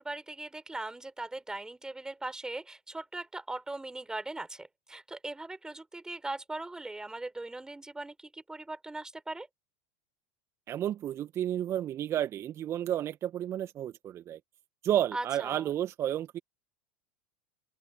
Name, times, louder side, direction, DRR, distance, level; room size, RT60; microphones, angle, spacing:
voice 1, 0.0-9.5 15.1-15.7, right 2 dB, 10° right, 5.3 m, -40 dB
voice 2, 10.7-14.4 14.8-16.4, right 11 dB, 35° right, 1.9 m, -31 dB
open air
figure-of-eight pair, 80°, 8 cm